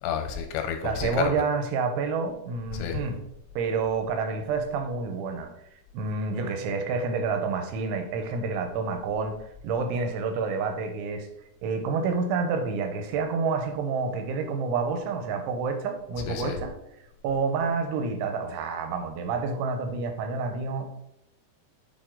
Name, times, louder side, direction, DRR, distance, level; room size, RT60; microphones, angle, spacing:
voice 1, 0.0-1.1 2.7-3.0 16.3-16.6, left 7 dB, 85° left, 6 dB, 2.7 m, -31 dB
voice 2, 0.8-3.2 3.6-5.5 5.9-9.4 9.6-11.3 11.6-16.7 17.2-20.8, right 4 dB, 90° right, 6 dB, 3.3 m, -28 dB
8.5 x 4.5 x 3.8 m, 0.81 s
omnidirectional pair, 5.3 m